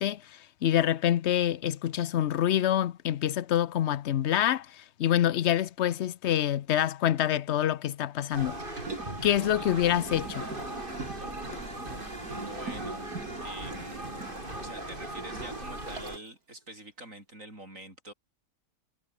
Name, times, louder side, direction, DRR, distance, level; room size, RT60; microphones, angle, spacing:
voice 1, 0.0-8.6 9.2-10.5, left 11 dB, 60° left, 0.8 m, -26 dB
sound 1, 8.3-16.2, right 1 dB, 35° right, 7.0 m, -39 dB
Liquid, 8.6-16.3 16.7-16.8, right 3 dB, 80° right, 4.0 m, -43 dB
voice 2, 12.2-13.1 13.4-14.2 14.6-18.1, right 1 dB, 55° right, 7.3 m, -46 dB
omnidirectional pair, 1.6 m